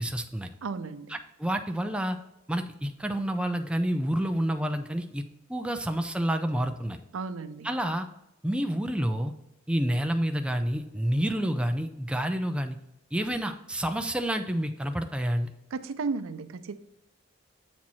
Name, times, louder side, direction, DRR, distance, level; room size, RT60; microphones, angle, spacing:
voice 1, 0.0-0.5 1.1-2.2 2.5-5.2 5.5-7.0 7.6-8.1 8.4-9.3 9.7-12.8 13.1-15.5, right 1 dB, 5° right, 5 dB, 0.5 m, -29 dB
voice 2, 0.6-1.2 7.1-7.8 15.7-16.8, right 4 dB, 90° right, 11 dB, 0.5 m, -34 dB
7.4 x 4.5 x 4.1 m, 0.86 s
head